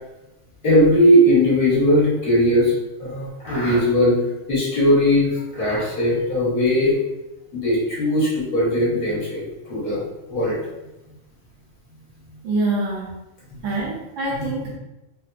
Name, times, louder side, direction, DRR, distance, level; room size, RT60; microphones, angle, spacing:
voice 1, 0.6-2.7 3.0-4.2 4.5-7.0 7.5-10.0 10.3-10.6 13.5-13.6 14.4-14.5, equal, 45° left, -8 dB, 1.3 m, -19 dB
voice 2, 12.4-13.2 13.6-14.8, right 2 dB, 80° right, -4 dB, 1.0 m, -25 dB
3.2 x 2.1 x 2.4 m, 0.97 s
omnidirectional pair, 1.3 m